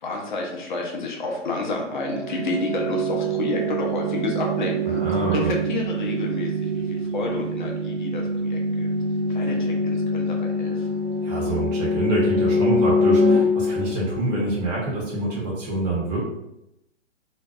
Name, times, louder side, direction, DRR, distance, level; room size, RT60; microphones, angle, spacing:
voice 1, 0.0-5.0 5.3-8.9 9.3-10.9, left 3 dB, 40° left, 0 dB, 0.5 m, -30 dB
sound 1, 1.9-14.6, left 1 dB, 55° right, 0.4 m, -24 dB
voice 2, 4.9-5.5 11.2-16.2, right 2 dB, 35° right, -5 dB, 0.9 m, -26 dB
2.5 x 2.2 x 2.2 m, 0.86 s
hypercardioid pair, 155°, 37 cm